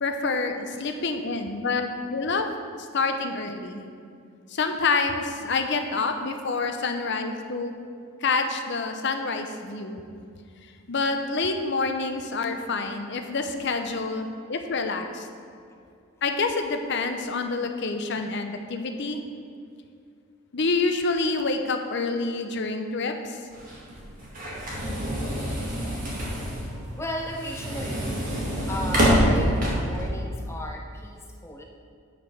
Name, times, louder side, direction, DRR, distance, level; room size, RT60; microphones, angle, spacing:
voice 1, 0.0-2.5 2.8-3.8 4.5-7.7 8.2-10.0 10.9-15.3 16.2-19.2 20.5-23.4, left 3 dB, 55° left, 6 dB, 0.7 m, -27 dB
sound 1, 23.5-30.1, equal, 40° right, 1.8 m, -26 dB
voice 2, 27.0-28.2 28.7-31.6, left 1 dB, 10° left, 1 dB, 0.5 m, -35 dB
8.4 x 4.9 x 5.9 m, 2.3 s
head